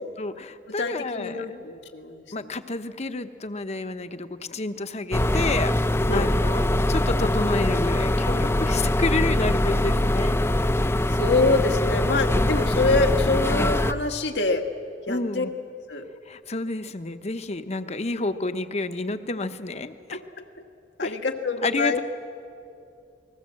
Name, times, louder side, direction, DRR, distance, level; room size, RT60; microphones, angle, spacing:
voice 1, 0.0-1.6 2.3-5.7 6.1-10.4 15.1-15.5 16.3-20.2 21.0-21.1 21.6-22.0, left 3 dB, 40° left, 10 dB, 1.0 m, -30 dB
voice 2, 0.8-2.5 6.1-6.3 11.1-14.6 15.1-15.5 15.9-16.1 20.1-20.2 21.0-22.0, left 3 dB, 85° left, 4 dB, 1.8 m, -25 dB
sound 1, 5.1-13.9, left 1 dB, 15° left, 0.6 m, -23 dB
29.5 x 20.5 x 7.7 m, 2.5 s
head